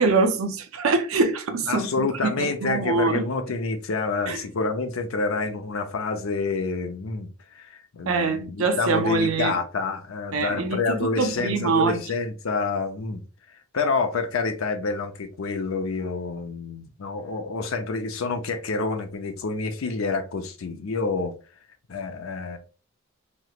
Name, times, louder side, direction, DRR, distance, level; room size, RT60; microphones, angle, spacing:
voice 1, 0.0-2.1 2.4-3.2 4.3-4.4 8.1-9.5 10.3-10.8 11.2-12.0, right 4 dB, 85° right, 0.6 m, -23 dB
voice 2, 1.7-13.2 13.7-21.3 21.9-22.6, left 4 dB, 80° left, 0.5 m, -28 dB
3.1 x 2.9 x 2.4 m
head